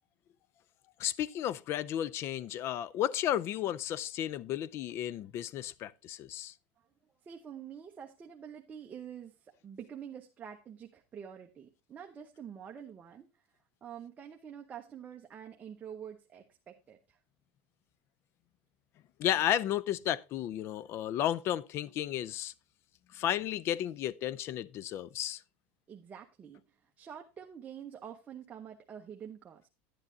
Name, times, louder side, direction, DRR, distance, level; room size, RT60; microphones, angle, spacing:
voice 1, 1.0-6.5 19.2-22.5 23.1-25.4, left 11 dB, 40° left, 0.4 m, -33 dB
voice 2, 7.2-13.5 13.8-17.2 25.9-29.7, right 8 dB, 25° right, 0.8 m, -47 dB
10.0 x 9.6 x 2.7 m
supercardioid pair, 135°, 7 cm